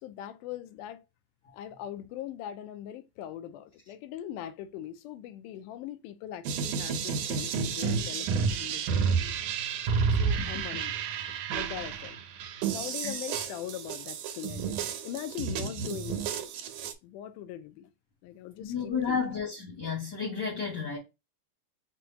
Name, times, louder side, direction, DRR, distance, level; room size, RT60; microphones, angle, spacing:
voice 1, 0.0-1.0 1.5-9.3 10.1-11.3 11.5-12.2 12.7-14.8 15.0-16.2 17.0-17.9 18.2-19.2, left 11 dB, 85° left, 2.1 m, -41 dB
sound 1, 6.4-16.9, right 6 dB, 90° right, 2.2 m, -31 dB
voice 2, 10.4-10.8 13.0-13.1 18.6-21.0, left 6 dB, 55° left, 1.2 m, -32 dB
5.8 x 2.1 x 2.8 m
omnidirectional pair, 3.6 m